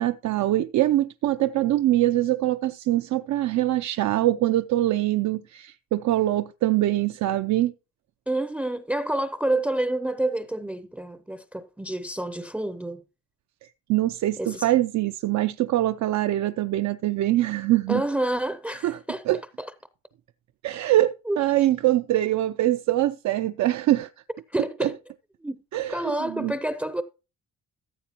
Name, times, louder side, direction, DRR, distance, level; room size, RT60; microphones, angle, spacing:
voice 1, 0.0-7.7 13.9-18.0 18.8-19.0 19.3-19.4 20.6-24.1 24.8-24.9 25.7-26.5, right 14 dB, 70° right, 0.5 m, -23 dB
voice 2, 8.3-13.0 14.4-14.7 17.9-19.2 19.6-19.7 21.3-21.4 24.5-25.0 25.4-27.0, right 1 dB, 5° right, 0.5 m, -28 dB
14.0 x 7.5 x 2.9 m
cardioid pair, 90°, 30 cm